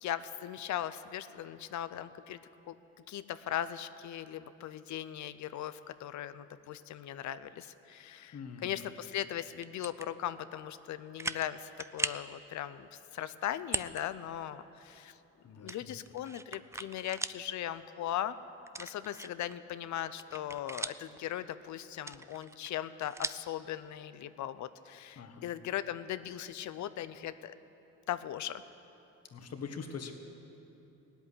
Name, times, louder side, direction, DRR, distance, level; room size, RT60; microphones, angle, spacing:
voice 1, 0.0-2.4 2.7-2.8 3.1-15.2 15.6-18.4 18.8-27.6 28.1-28.6, left 11 dB, 70° left, 13 dB, 0.6 m, -39 dB
voice 2, 8.3-8.7 15.4-16.0 25.2-25.5 29.3-30.1, left 6 dB, 55° left, 5 dB, 1.6 m, -43 dB
sound 1, 9.5-10.1 10.6-10.7 11.2-11.5 11.8-12.3 13.6-14.0 14.4-14.5 15.7-17.4 17.8-17.9 18.7-19.5 19.9-21.2 21.9-23.5, right 2 dB, 10° right, 0.4 m, -39 dB
17.5 x 8.2 x 9.9 m, 3.0 s
cardioid pair, 90°, 30 cm